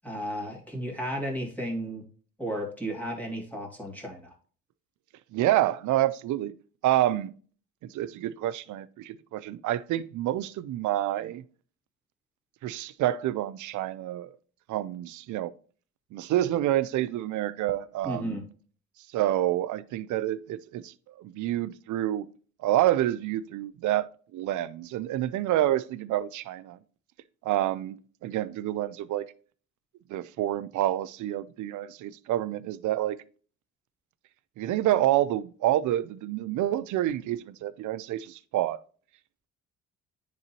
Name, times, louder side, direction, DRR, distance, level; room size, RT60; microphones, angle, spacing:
voice 1, 0.0-2.0 2.4-4.3 18.0-18.4, equal, 5° left, 2.4 m, -33 dB
voice 2, 5.3-6.5 6.8-7.3 7.8-11.4 12.6-14.3 14.7-15.5 16.1-18.4 19.1-22.3 22.6-26.8 27.4-29.3 30.1-33.2 34.6-38.8, right 13 dB, 75° right, 0.5 m, -28 dB
9.7 x 3.9 x 2.9 m
cardioid pair, 90°, 30 cm